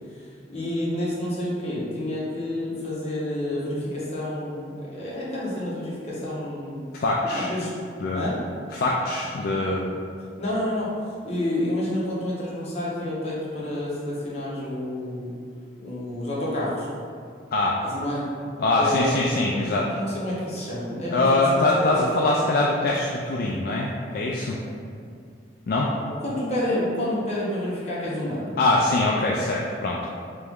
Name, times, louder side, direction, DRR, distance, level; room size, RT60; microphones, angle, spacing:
voice 1, 0.5-6.9 7.3-7.7 8.1-8.4 10.4-10.9 11.2-15.3 15.8-16.9 17.8-18.3 18.8-19.1 19.6-21.7 21.9-22.1 26.2-28.6, left 1 dB, 40° left, -7 dB, 1.0 m, -29 dB
voice 2, 7.0-7.5 8.0-8.3 8.7-9.9 17.5-17.8 18.6-19.9 21.1-24.6 25.7-25.9 28.6-30.1, left 2 dB, 55° left, -3 dB, 0.3 m, -23 dB
3.4 x 3.0 x 3.5 m, 2.3 s
head